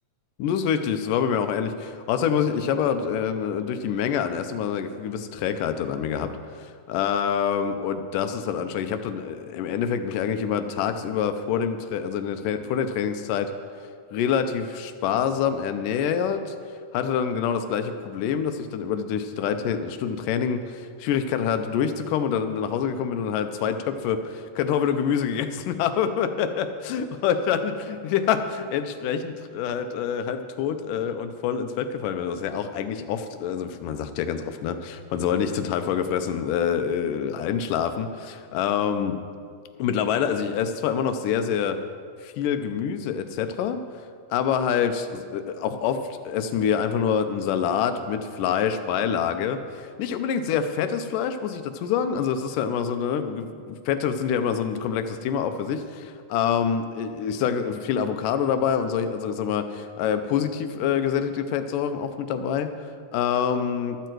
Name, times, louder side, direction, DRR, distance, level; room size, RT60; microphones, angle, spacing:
voice 1, 0.4-13.5 14.1-16.6 16.9-39.2 39.8-41.8 42.2-43.8 44.3-64.0, left 7 dB, 90° left, 9 dB, 2.4 m, -26 dB
14.0 x 12.5 x 4.6 m, 2.1 s
omnidirectional pair, 3.7 m